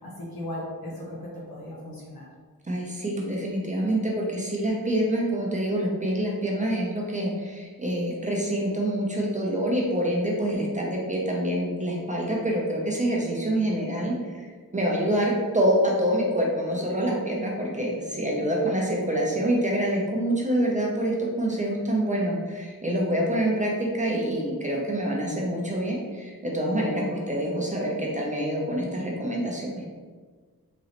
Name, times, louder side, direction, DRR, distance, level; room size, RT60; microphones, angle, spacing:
voice 1, 0.0-2.3, left 1 dB, 75° left, -5 dB, 1.3 m, -37 dB
voice 2, 2.6-14.5 14.7-29.8, right 1 dB, 20° right, -3 dB, 0.5 m, -26 dB
3.9 x 3.0 x 2.9 m, 1.5 s
wide cardioid pair, 155°, 36 cm